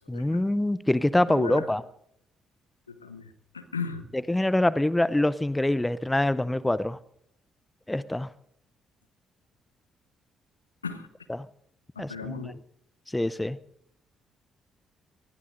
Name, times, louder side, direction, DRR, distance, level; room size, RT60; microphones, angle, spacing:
voice 1, 0.1-1.8 4.3-7.0 7.9-8.3 12.0-12.5 13.1-13.6, left 1 dB, 10° left, 18 dB, 0.7 m, -25 dB
voice 2, 1.3-1.7 2.9-4.1 10.8-11.1 11.9-12.6, left 5 dB, 85° left, 11 dB, 0.9 m, -36 dB
25.5 x 19.5 x 2.6 m, 0.73 s
figure-of-eight pair, 45°, 0 cm